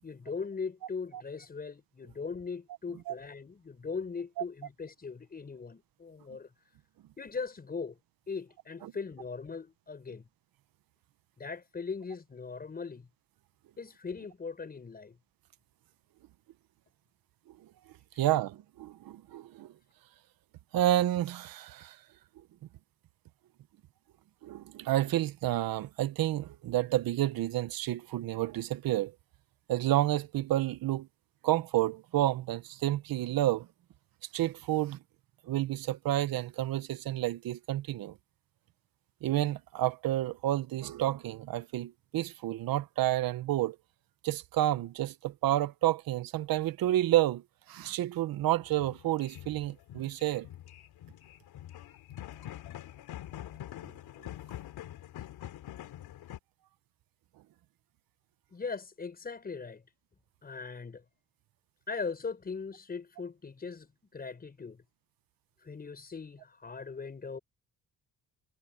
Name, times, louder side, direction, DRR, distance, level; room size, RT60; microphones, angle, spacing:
voice 1, 0.0-6.5 7.2-8.0 8.3-10.3 11.4-13.1 13.8-15.2 58.5-59.8 60.4-61.0 61.9-64.8 65.6-67.4, left 5 dB, 25° left, 5.5 m, -39 dB
voice 2, 18.2-19.7 20.7-22.0 24.4-29.1 29.7-31.1 31.4-33.7 34.3-35.0 35.4-38.1 39.2-43.8 44.2-47.4 47.7-50.5, right 14 dB, 70° right, 1.0 m, -30 dB
sound 1, 48.6-56.4, left 12 dB, 80° left, 3.4 m, -45 dB
cardioid pair, 155°, 37 cm